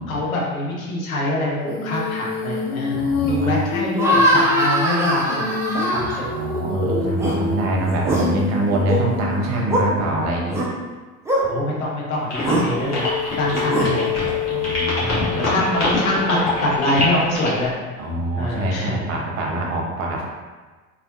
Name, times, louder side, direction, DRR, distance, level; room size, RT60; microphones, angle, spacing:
voice 1, 0.1-5.6 5.9-6.3 11.5-13.1 13.4-14.2 15.0-17.7 18.4-19.1, left 1 dB, 70° left, -3 dB, 0.9 m, -24 dB
Female singing, 1.7-10.6 12.8-17.0, left 5 dB, 90° left, 0.5 m, -27 dB
voice 2, 2.9-3.6 5.9-10.6 14.1-15.5 18.0-20.2, right 1 dB, 40° right, -1 dB, 0.7 m, -25 dB
sound 1, 4.0-6.6 7.0-7.4 7.9-8.2 8.7-9.0 9.7-9.8 10.5-10.7 11.3-11.4 12.4-12.6 13.5-13.9, right 1 dB, 5° right, 0.4 m, -21 dB
sound 2, 12.3-17.7, left 2 dB, 35° left, 1.3 m, -25 dB
3.3 x 2.5 x 2.6 m, 1.3 s
figure-of-eight pair, 75°, 42 cm